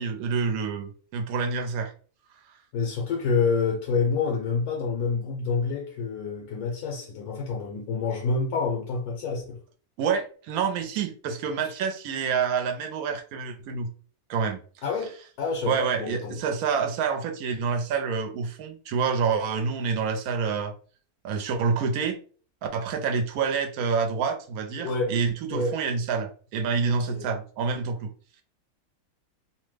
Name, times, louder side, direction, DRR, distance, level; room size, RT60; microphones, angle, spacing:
voice 1, 0.0-1.9 10.0-13.9 14.3-14.6 15.7-20.7 21.2-22.2 22.7-28.1, right 5 dB, 80° right, 1.1 m, -27 dB
voice 2, 2.7-9.6 14.8-16.4 24.8-25.1 25.5-25.8 26.9-27.3, left 4 dB, 90° left, 1.2 m, -28 dB
2.9 x 2.1 x 3.2 m
omnidirectional pair, 1.5 m